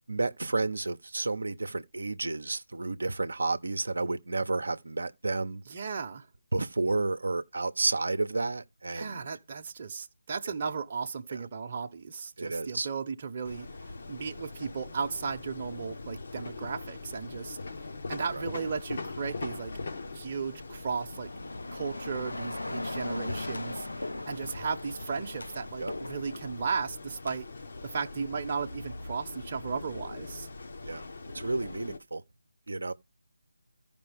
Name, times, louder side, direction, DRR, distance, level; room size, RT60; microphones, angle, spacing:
voice 1, 0.1-5.6 6.5-9.3 11.3-11.4 12.4-12.9 18.3-18.4 25.8-25.9 30.8-31.0 31.3-32.2 32.7-32.9, right 3 dB, 70° right, 0.7 m, -31 dB
voice 2, 5.7-6.3 8.9-13.7 14.1-17.6 18.1-19.7 20.1-21.3 21.7-27.4 27.9-30.5, right 5 dB, 30° right, 0.9 m, -35 dB
sound 1, 13.4-32.0, left 3 dB, 55° left, 1.1 m, -42 dB
sound 2, 20.7-27.4, left 2 dB, 85° left, 0.7 m, -40 dB
14.5 x 5.3 x 3.5 m
figure-of-eight pair, 160°, 0 cm